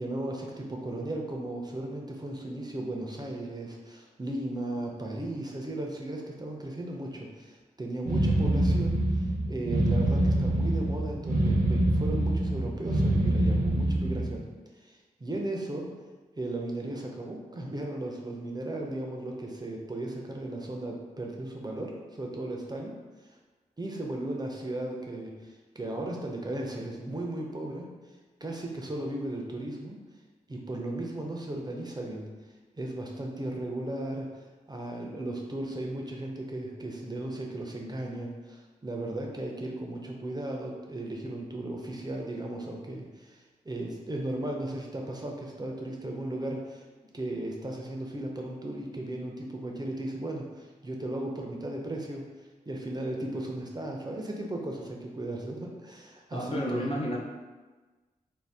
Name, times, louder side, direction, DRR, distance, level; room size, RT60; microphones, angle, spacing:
voice 1, 0.0-14.4 14.8-15.9 16.4-22.9 23.2-23.4 23.8-27.9 28.4-30.0 30.5-32.3 32.8-34.3 34.7-46.8 47.1-52.2 52.7-56.9, right 1 dB, 25° right, 0 dB, 0.5 m, -36 dB
sound 1, 8.1-14.4, right 1 dB, 70° right, 0.7 m, -25 dB
voice 2, 56.3-57.2, equal, 40° left, -2 dB, 0.6 m, -31 dB
2.6 x 2.1 x 3.3 m, 1.3 s
cardioid pair, 45°, 15 cm